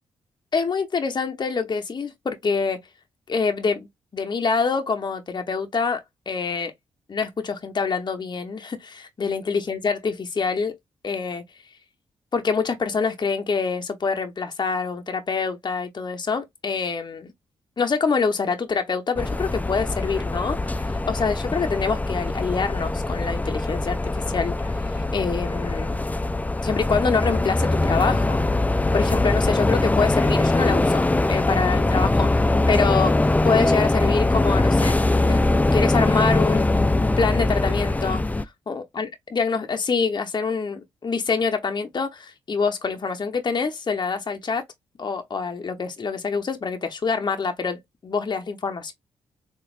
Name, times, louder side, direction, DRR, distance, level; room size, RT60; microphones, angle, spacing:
voice 1, 0.5-2.8 3.3-6.7 7.1-10.8 11.0-11.4 12.3-17.3 17.8-24.0 24.3-24.7 25.1-26.0 26.6-28.4 28.9-33.1 33.4-35.0 35.3-35.4 35.7-38.2 38.7-44.6 45.0-48.9, left 5 dB, 40° left, 0.9 m, -26 dB
sound 1, 19.2-38.4, left 2 dB, 15° left, 0.4 m, -22 dB
4.0 x 2.5 x 2.4 m
hypercardioid pair, 40°, 12 cm